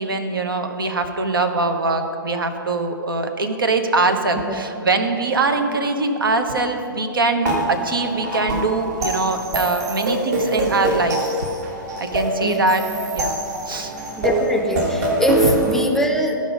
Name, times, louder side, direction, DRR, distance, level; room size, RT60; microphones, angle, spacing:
voice 1, 0.0-11.3 12.0-12.8 13.1-13.4 13.7-13.9 15.4-15.5, right 3 dB, 70° right, 6 dB, 0.9 m, -22 dB
sound 1, 7.4-15.8, right 2 dB, 50° right, 1.7 m, -24 dB
voice 2, 14.2-16.3, left 1 dB, 5° left, 3 dB, 0.5 m, -23 dB
13.5 x 5.2 x 5.2 m, 2.7 s
figure-of-eight pair, 115°, 12 cm